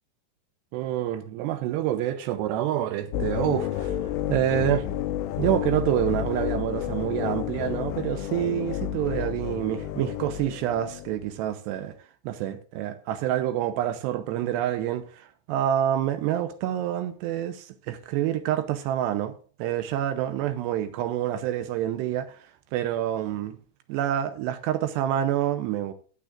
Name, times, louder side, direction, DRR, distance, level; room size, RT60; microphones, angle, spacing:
voice 1, 0.7-4.0 4.3-4.9 5.4-12.0 12.2-19.3 19.6-22.4 22.7-23.6 23.9-25.9, right 12 dB, 80° right, 2.5 m, -27 dB
sound 1, 3.1-11.2, left 11 dB, 80° left, 3.1 m, -30 dB
15.0 x 9.6 x 2.5 m
omnidirectional pair, 5.6 m